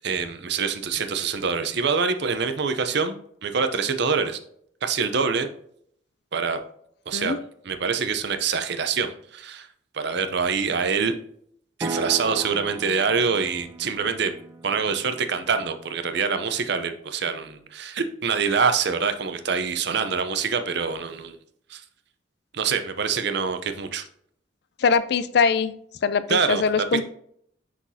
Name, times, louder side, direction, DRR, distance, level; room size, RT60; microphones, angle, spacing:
voice 1, 0.0-3.2 3.4-4.4 4.8-5.5 6.3-6.6 7.1-7.4 7.6-9.7 9.9-11.1 11.8-14.3 14.6-21.4 21.7-21.8 22.5-24.0 26.3-27.0, right 5 dB, 60° right, 9 dB, 0.6 m, -25 dB
sound 1, 11.8-15.9, right 3 dB, 20° right, 0.5 m, -36 dB
voice 2, 24.8-25.7 26.0-27.0, left 5 dB, 60° left, 14 dB, 0.4 m, -22 dB
6.1 x 5.8 x 2.7 m, 0.66 s
head